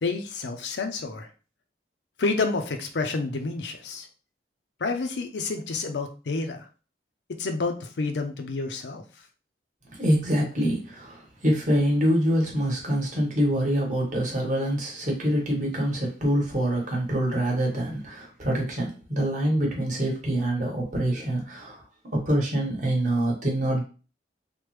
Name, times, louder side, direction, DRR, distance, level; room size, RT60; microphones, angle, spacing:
voice 1, 0.0-1.3 2.2-4.1 4.8-6.7 7.4-9.0, left 3 dB, 75° left, 6 dB, 0.5 m, -29 dB
voice 2, 9.9-21.8 22.1-23.8, right 1 dB, 45° right, -1 dB, 1.2 m, -25 dB
3.4 x 2.1 x 3.1 m, 0.35 s
head